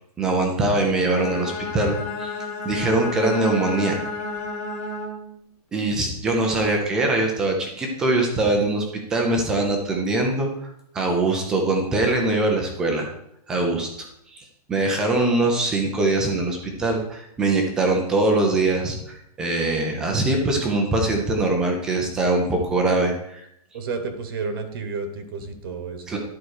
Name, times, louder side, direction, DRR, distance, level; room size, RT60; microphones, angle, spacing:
voice 1, 0.2-2.3 2.6-4.0 5.7-8.8 9.1-10.7 10.9-13.1 13.5-13.9 14.3-14.4 14.7-23.5 26.1-26.2, right 2 dB, 5° right, 2 dB, 0.3 m, -22 dB
Bowed string instrument, 0.9-5.4, left 3 dB, 25° left, 1.3 m, -31 dB
voice 2, 23.7-26.1, right 4 dB, 35° right, 8 dB, 1.0 m, -31 dB
11.0 x 4.5 x 6.3 m, 0.75 s
hypercardioid pair, 175°, 21 cm